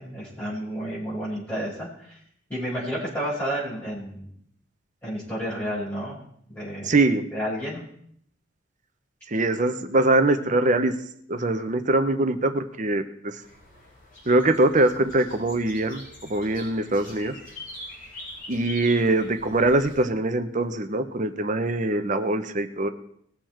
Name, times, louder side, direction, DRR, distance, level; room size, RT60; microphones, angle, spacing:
voice 1, 0.0-2.2 2.5-4.3 5.0-6.2 6.5-7.0 7.3-7.8, equal, 10° left, -11 dB, 5.3 m, -31 dB
voice 2, 6.8-7.2 9.3-11.0 11.3-13.4 14.3-16.0 16.3-17.4 18.5-22.9, right 2 dB, 40° right, 8 dB, 0.9 m, -23 dB
sound 1, 13.4-20.0, left 1 dB, 45° left, 6.3 m, -43 dB
20.5 x 7.0 x 4.5 m, 0.67 s
head